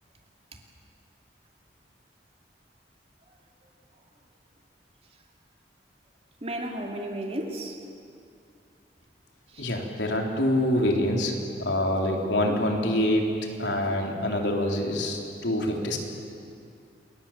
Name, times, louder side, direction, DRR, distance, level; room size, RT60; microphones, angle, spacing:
voice 1, 6.4-7.8 9.5-9.7 12.1-12.6, right 1 dB, 35° right, 2 dB, 2.6 m, -34 dB
voice 2, 9.6-13.3 13.6-16.0, left 1 dB, 85° left, 1 dB, 3.6 m, -26 dB
28.5 x 22.0 x 7.4 m, 2.5 s
head